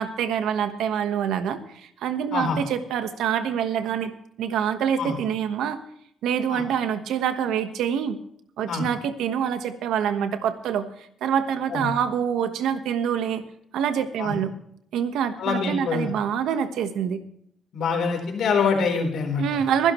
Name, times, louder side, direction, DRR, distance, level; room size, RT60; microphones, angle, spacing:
voice 1, 0.0-4.1 4.4-5.8 6.2-8.2 8.6-13.4 13.7-14.5 14.9-17.2 19.4-19.9, right 8 dB, 90° right, 9 dB, 1.3 m, -26 dB
voice 2, 15.4-16.1 17.7-19.6, left 5 dB, 70° left, 3 dB, 4.2 m, -25 dB
23.5 x 11.0 x 3.2 m, 0.68 s
cardioid pair, 120°, 0 cm